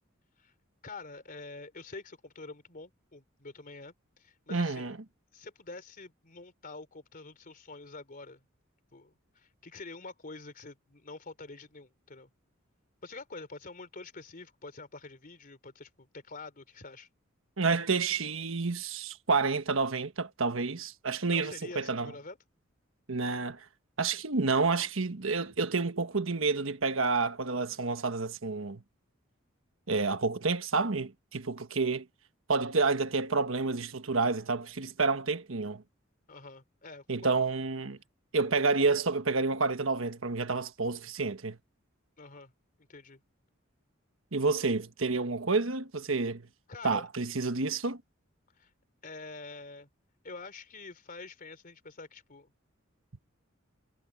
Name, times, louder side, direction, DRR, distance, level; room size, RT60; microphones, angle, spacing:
voice 1, 0.8-5.0 5.3-8.4 8.9-12.3 13.0-17.1 21.3-22.4 36.3-37.3 42.2-42.5 42.8-43.2 46.7-47.1 48.6-48.7 49.0-49.9 50.2-52.5, left 3 dB, 45° left, 3.3 m, -46 dB
voice 2, 4.5-5.0 17.6-22.1 23.1-23.6 24.0-28.8 29.9-32.1 32.5-35.8 37.1-38.0 38.3-41.6 44.3-46.5 46.8-48.0, right 4 dB, 75° right, 1.3 m, -29 dB
head